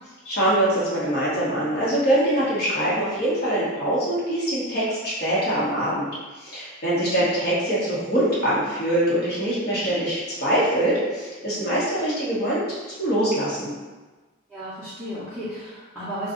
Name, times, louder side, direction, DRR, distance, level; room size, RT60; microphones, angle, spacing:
voice 1, 0.2-6.1 6.4-13.7, right 1 dB, 50° left, -8 dB, 1.1 m, -23 dB
voice 2, 14.5-16.3, equal, 5° left, -13 dB, 0.7 m, -34 dB
2.6 x 2.3 x 3.6 m, 1.3 s
head